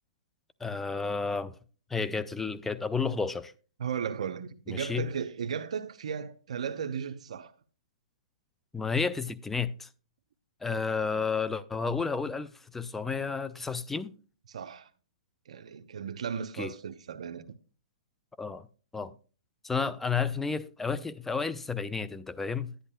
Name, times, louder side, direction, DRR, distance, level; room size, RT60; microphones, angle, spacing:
voice 1, 0.6-1.6 1.9-3.5 4.7-5.1 8.7-9.9 10.6-14.1 16.6-16.7 18.4-18.7 18.9-19.1 19.6-22.7, left 5 dB, 5° left, 0.4 m, -31 dB
voice 2, 3.8-7.5 14.5-14.9 15.5-17.5, right 7 dB, 75° right, 0.7 m, -35 dB
11.0 x 10.5 x 2.2 m
hypercardioid pair, 145°, 4 cm